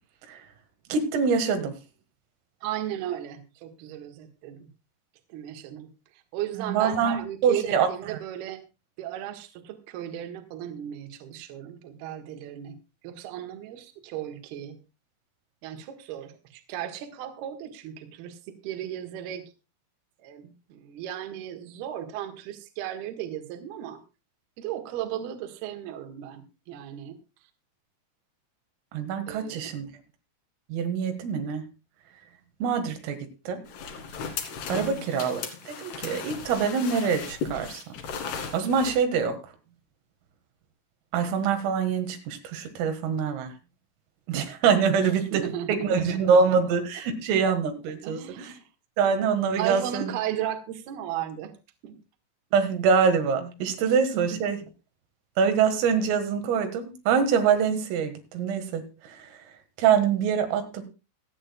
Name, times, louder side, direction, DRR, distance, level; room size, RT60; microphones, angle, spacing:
voice 1, 0.9-1.7 6.6-8.2 28.9-29.9 30.7-31.6 32.6-33.2 33.5-33.6 34.7-37.8 38.5-39.4 41.1-43.5 44.3-45.4 45.7-48.5 49.0-50.1 52.5-54.6 55.4-59.3 59.8-60.8, right 6 dB, 80° right, 7 dB, 4.3 m, -25 dB
voice 2, 2.6-4.7 5.3-5.9 6.3-8.6 9.0-12.8 13.0-14.8 15.6-18.4 18.6-19.4 20.2-24.0 24.6-27.2 29.3-29.8 34.7-35.1 45.0-46.5 48.0-48.7 49.6-51.5 51.8-52.0 54.1-54.4, right 11 dB, 60° right, 6 dB, 3.0 m, -35 dB
sound 1, 33.7-39.0, left 5 dB, 60° left, 3.9 m, -36 dB
26.0 x 8.8 x 2.3 m, 0.29 s
omnidirectional pair, 5.9 m